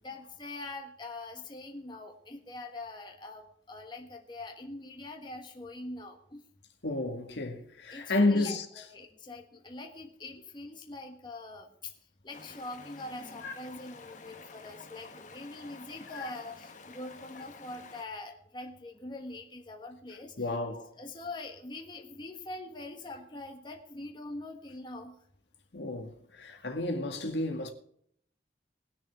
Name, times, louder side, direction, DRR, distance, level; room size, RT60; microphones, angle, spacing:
voice 1, 0.0-6.4 7.9-11.9 12.2-20.3 21.0-25.2, left 2 dB, 25° left, 1.4 m, -43 dB
voice 2, 6.8-8.7 13.4-13.5 16.1-16.3 20.4-20.9 25.7-27.7, left 2 dB, 80° left, 1.9 m, -31 dB
Stream, 12.3-18.0, left 4 dB, 45° left, 1.3 m, -50 dB
20.0 x 6.6 x 4.8 m
head